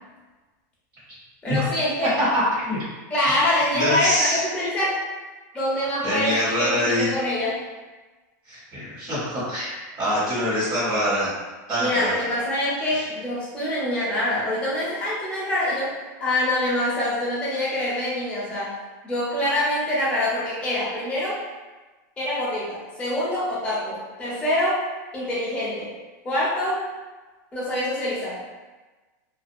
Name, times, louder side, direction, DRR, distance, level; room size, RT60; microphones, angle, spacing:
voice 1, 1.4-2.1 3.1-5.0 5.5-7.6 11.8-15.9 16.2-18.7 19.0-21.4 22.2-24.8 25.1-25.9 26.2-26.8 27.5-28.4, left 1 dB, 10° left, -8 dB, 0.8 m, -25 dB
voice 2, 2.2-2.8 3.7-4.4 6.0-7.1 8.5-11.3 11.7-12.2 12.9-13.0, equal, 30° right, -13 dB, 1.3 m, -24 dB
2.5 x 2.3 x 2.6 m, 1.2 s
supercardioid pair, 165°, 9 cm